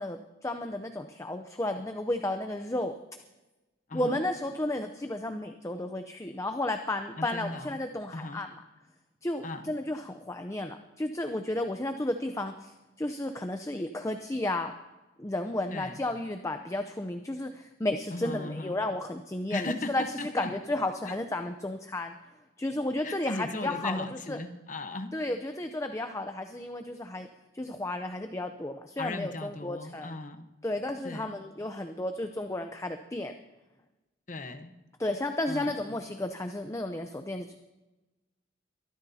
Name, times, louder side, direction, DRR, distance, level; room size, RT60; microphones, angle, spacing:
voice 1, 0.0-3.0 3.9-8.5 9.2-14.8 15.2-20.0 20.3-22.1 22.6-24.0 24.3-24.4 25.1-27.3 27.5-30.1 30.6-33.3 35.0-37.5, left 1 dB, 15° left, 6 dB, 0.6 m, -33 dB
voice 2, 3.9-4.2 7.2-7.8 8.1-8.4 9.4-9.7 15.7-16.0 18.1-18.8 19.5-20.5 21.0-21.2 23.0-25.1 29.0-30.5 31.0-31.4 34.3-34.7 35.5-35.8, left 2 dB, 40° left, 8 dB, 1.0 m, -37 dB
23.5 x 14.0 x 2.8 m, 1.1 s
head